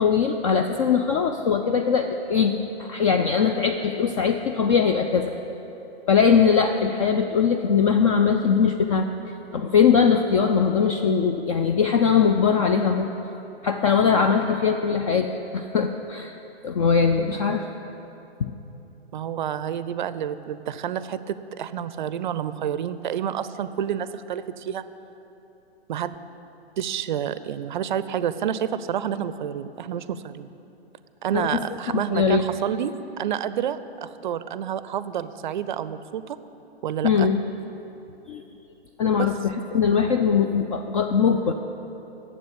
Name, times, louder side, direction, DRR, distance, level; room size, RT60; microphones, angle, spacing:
voice 1, 0.0-2.5 2.8-5.3 6.1-9.1 9.5-13.1 13.6-15.3 15.5-16.3 16.6-17.7 18.4-18.5 31.3-31.5 31.9-32.4 37.0-37.4 38.3-38.4 39.0-41.5, left 6 dB, 35° left, 6 dB, 0.4 m, -21 dB
voice 2, 19.1-24.8 25.9-26.2 26.8-30.5 31.2-36.4 36.8-37.3 39.2-39.3 39.7-39.9, right 9 dB, 50° right, 14 dB, 0.5 m, -29 dB
9.4 x 7.6 x 8.0 m, 3.0 s
figure-of-eight pair, 120°, 32 cm